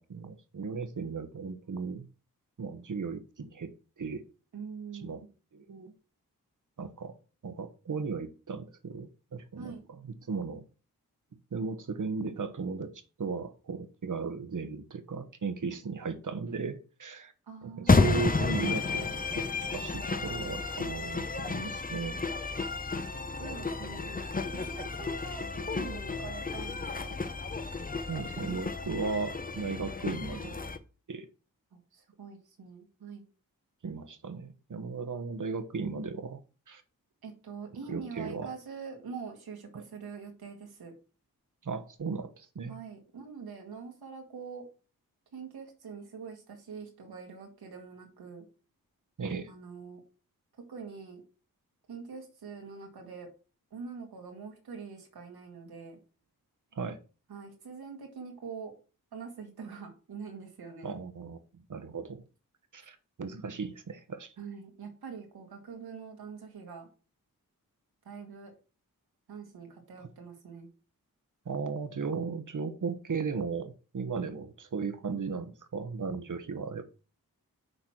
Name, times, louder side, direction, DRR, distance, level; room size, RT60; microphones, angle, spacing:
voice 1, 0.0-2.1 2.6-4.2 4.9-5.2 5.5-5.9 6.8-7.2 7.4-10.6 11.5-17.3 17.6-22.2 28.1-30.6 31.1-31.3 33.8-36.4 36.7-36.8 37.9-38.5 39.7-39.8 41.6-42.8 49.2-49.5 56.7-57.0 60.8-62.2 62.7-64.3 71.4-76.8, right 4 dB, 55° right, 8 dB, 1.2 m, -36 dB
voice 2, 4.5-5.3 9.6-9.9 17.5-18.2 23.4-24.2 24.5-27.2 31.7-33.2 37.2-40.9 42.7-44.7 45.3-48.4 49.5-50.0 50.6-51.2 51.9-53.3 53.7-56.0 57.3-58.7 59.1-61.0 64.4-66.9 68.0-68.5 69.3-70.7, right 5 dB, 85° right, 3 dB, 2.1 m, -44 dB
sound 1, 17.9-30.8, left 3 dB, 25° left, 0.9 m, -31 dB
6.7 x 4.2 x 6.1 m, 0.35 s
cardioid pair, 40°, 37 cm